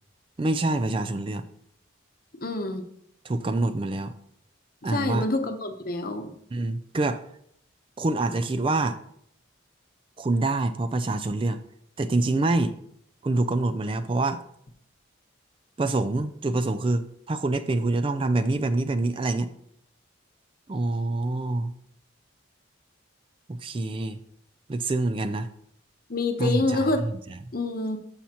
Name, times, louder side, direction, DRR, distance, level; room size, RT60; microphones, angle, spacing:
voice 1, 0.4-1.4 3.2-4.1 4.8-5.3 6.5-7.2 8.0-9.0 10.2-11.6 12.0-12.8 13.2-14.4 15.8-19.5 20.7-21.7 23.5-24.2 24.7-25.5 26.4-27.4, right 2 dB, 25° right, 10 dB, 0.3 m, -26 dB
voice 2, 2.4-2.8 4.9-6.3 26.1-27.0 27.5-28.0, left 2 dB, 45° left, 6 dB, 0.9 m, -27 dB
13.5 x 5.6 x 2.9 m, 0.70 s
head